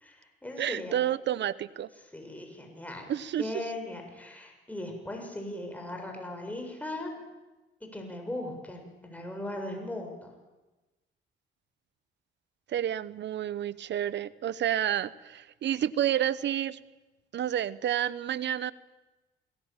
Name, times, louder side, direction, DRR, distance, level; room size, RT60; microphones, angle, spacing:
voice 1, 0.0-0.9 2.1-3.0 3.4-7.1 7.8-10.1, left 1 dB, 5° left, 2 dB, 7.0 m, -38 dB
voice 2, 0.6-1.9 3.1-3.6 12.7-16.8 17.3-18.7, right 11 dB, 65° right, 18 dB, 0.9 m, -30 dB
27.5 x 18.0 x 9.0 m, 1.1 s
cardioid pair, 90°, 20 cm